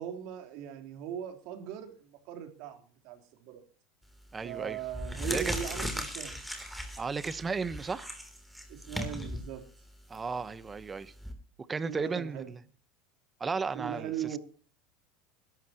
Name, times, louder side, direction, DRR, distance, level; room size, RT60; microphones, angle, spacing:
voice 1, 0.0-3.6 4.4-6.4 8.7-9.6 11.9-12.5 13.7-14.4, right 10 dB, 65° right, 3.7 m, -39 dB
sound 1, 4.1-4.4 4.8-11.3, equal, ahead, 3.1 m, -38 dB
voice 2, 4.3-4.8 5.2-5.5 7.0-8.1 10.1-11.1 11.7-12.6 13.4-14.4, right 4 dB, 20° right, 1.0 m, -34 dB
20.5 x 12.0 x 2.9 m
supercardioid pair, 130°, 0 cm